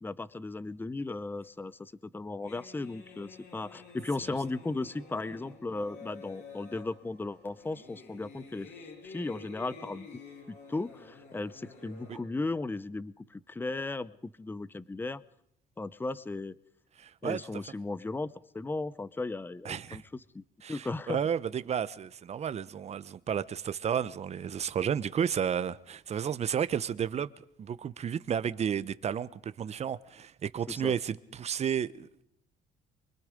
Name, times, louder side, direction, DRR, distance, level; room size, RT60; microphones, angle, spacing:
voice 1, 0.0-8.7 9.0-10.1 10.5-15.2 15.8-16.5 17.2-20.4 20.7-21.2 30.7-30.9, left 3 dB, 10° left, 0.7 m, -36 dB
sound 1, 2.4-12.2, left 4 dB, 75° left, 7.7 m, -50 dB
voice 2, 17.0-17.4 19.6-20.0 20.6-32.2, right 8 dB, 40° right, 0.9 m, -32 dB
25.0 x 23.5 x 5.2 m
cardioid pair, 110°, 17 cm